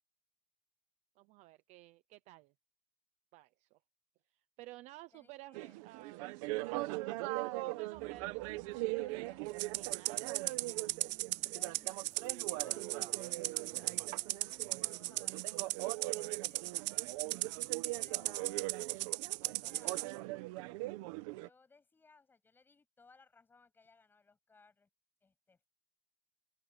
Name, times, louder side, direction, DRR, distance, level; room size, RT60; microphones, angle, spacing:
voice 1, 1.2-2.5 3.3-3.8 4.6-6.3 6.6-9.4 9.7-10.7 17.2-17.6, right 18 dB, 35° right, 0.7 m, -55 dB
voice 2, 5.1-5.8 8.9-9.5 11.4-16.8 17.8-18.7 19.4-20.2 21.4-24.9 25.2-25.7, left 4 dB, 10° left, 7.7 m, -64 dB
sound 1, 5.5-21.5, right 21 dB, 55° right, 1.2 m, -41 dB
sound 2, 7.9-19.0, right 6 dB, 15° right, 3.4 m, -62 dB
Rattle (instrument), 9.6-20.1, right 19 dB, 90° right, 0.7 m, -37 dB
open air
supercardioid pair, 180°, 20 cm